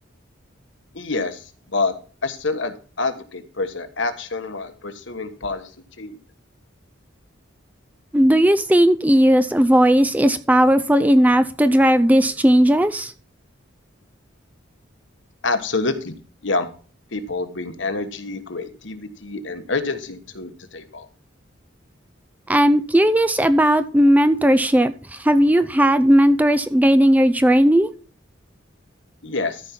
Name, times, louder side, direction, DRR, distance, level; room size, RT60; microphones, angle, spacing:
voice 1, 0.9-1.4 1.7-1.9 2.2-5.6 6.0-6.2 15.4-16.7 17.1-21.0 29.2-29.6, left 3 dB, 70° left, 9 dB, 1.3 m, -27 dB
voice 2, 8.1-13.1 22.5-27.9, equal, 10° right, 10 dB, 0.4 m, -16 dB
14.0 x 5.4 x 4.4 m, 0.39 s
head